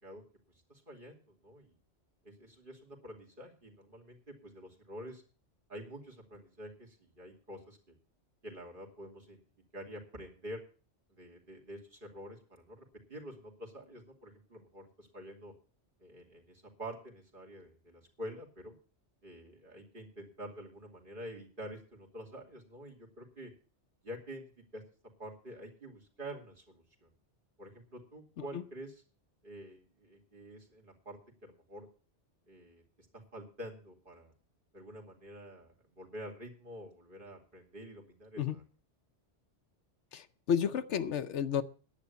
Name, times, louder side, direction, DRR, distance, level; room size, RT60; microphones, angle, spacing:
voice 1, 0.7-1.7 2.2-5.2 5.7-7.8 8.4-9.4 9.7-10.6 11.1-15.5 16.0-18.7 19.2-23.5 24.0-24.4 24.7-24.8 25.2-27.1 27.6-29.0 29.4-31.9 32.5-32.8 33.1-34.3 34.7-38.6, equal, 45° right, 0 dB, 3.0 m, -48 dB
voice 2, 40.1-41.6, left 8 dB, 75° left, 11 dB, 1.1 m, -32 dB
10.5 x 8.3 x 8.3 m, 0.39 s
omnidirectional pair, 1.2 m